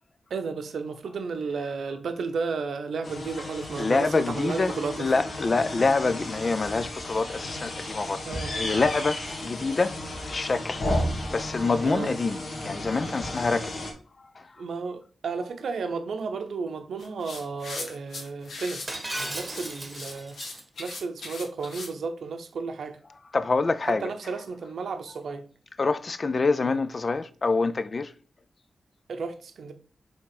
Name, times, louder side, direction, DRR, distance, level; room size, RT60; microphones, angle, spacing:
voice 1, 0.3-5.1 8.3-8.5 11.9-12.1 14.6-20.4 20.8-23.0 23.9-25.4 26.6-26.8 29.1-29.7, right 4 dB, 80° right, 0.7 m, -33 dB
sound 1, 3.0-13.9, left 1 dB, 55° left, 2.0 m, -34 dB
voice 2, 3.8-8.3 8.5-13.7 14.4-14.5 23.3-24.1 25.8-28.1, left 3 dB, 35° left, 0.4 m, -26 dB
sound 2, 17.0-21.9, left 3 dB, 75° left, 1.5 m, -39 dB
Shatter, 18.9-20.6, right 1 dB, 10° right, 1.2 m, -35 dB
6.1 x 3.6 x 4.8 m
wide cardioid pair, 155°, 0 cm